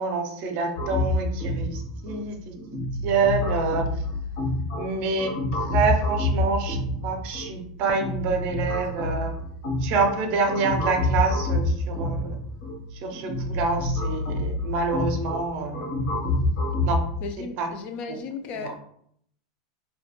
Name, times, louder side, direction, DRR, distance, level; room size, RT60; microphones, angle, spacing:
voice 1, 0.0-2.5 3.0-3.9 4.8-5.3 5.7-6.8 7.0-9.4 9.8-12.3 13.0-15.9 16.8-17.1 17.6-17.7 18.5-18.7, right 4 dB, 45° right, 0.5 m, -27 dB
sound 1, 0.8-17.0, left 2 dB, 55° left, 0.8 m, -28 dB
voice 2, 17.2-18.8, left 5 dB, 40° left, 0.3 m, -35 dB
2.4 x 2.2 x 2.9 m
supercardioid pair, 150°, 3 cm